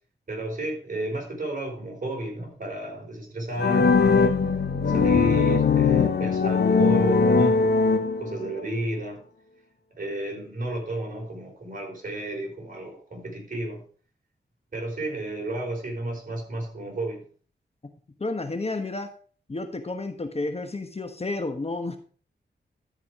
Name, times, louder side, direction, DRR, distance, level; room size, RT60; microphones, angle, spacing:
voice 1, 0.3-4.4 4.9-9.2 10.0-13.8 14.7-17.2, right 1 dB, 50° right, -1 dB, 4.4 m, -32 dB
sound 1, 3.6-8.5, left 5 dB, 65° left, 1.1 m, -20 dB
voice 2, 18.2-19.1 19.5-22.0, left 2 dB, 35° left, 7 dB, 1.2 m, -31 dB
13.0 x 4.9 x 4.8 m, 0.42 s
wide cardioid pair, 75°, 18 cm